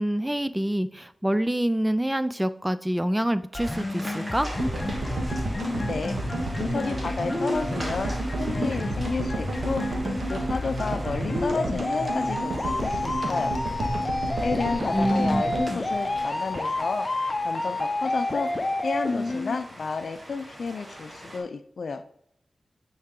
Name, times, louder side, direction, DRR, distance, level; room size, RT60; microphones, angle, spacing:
voice 1, 0.0-4.5 14.9-15.4, right 1 dB, 10° right, 13 dB, 0.4 m, -26 dB
sound 1, 3.5-19.6, left 2 dB, 35° left, 0.8 m, -30 dB
sound 2, 3.6-21.4, equal, 35° right, 2.6 m, -42 dB
sound 3, 4.6-16.8 17.1-17.2 17.3-17.4, right 2 dB, 80° right, 1.6 m, -32 dB
voice 2, 6.6-9.8 10.3-13.5 14.4-17.1 17.4-18.5 18.8-22.0, left 4 dB, 75° left, 10 dB, 0.5 m, -31 dB
9.3 x 4.7 x 3.8 m, 0.68 s
wide cardioid pair, 70°, 0 cm